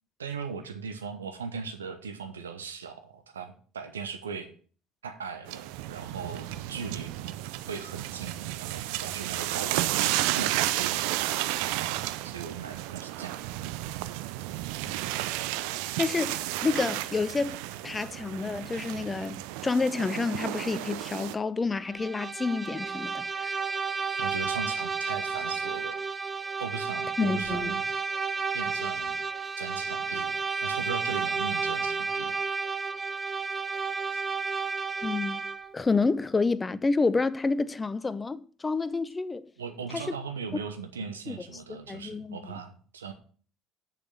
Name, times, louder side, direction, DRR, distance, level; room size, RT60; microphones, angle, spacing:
voice 1, 0.2-4.5 5.0-7.1 7.7-11.0 12.2-13.4 24.2-26.0 26.6-27.8 28.5-29.2 29.6-30.3 30.6-32.3 39.6-43.1, right 6 dB, 85° right, 0.9 m, -38 dB
sound 1, 5.5-21.3, right 15 dB, 70° right, 0.5 m, -32 dB
voice 2, 16.0-17.6 17.8-23.6 27.2-27.7 35.0-35.4 35.7-39.5 39.9-40.2 41.3-41.4 41.7-42.6, left 4 dB, 25° left, 0.6 m, -29 dB
Bowed string instrument, 21.8-35.7, right 4 dB, 25° right, 0.8 m, -32 dB
6.7 x 5.9 x 7.2 m
figure-of-eight pair, 60°, 0 cm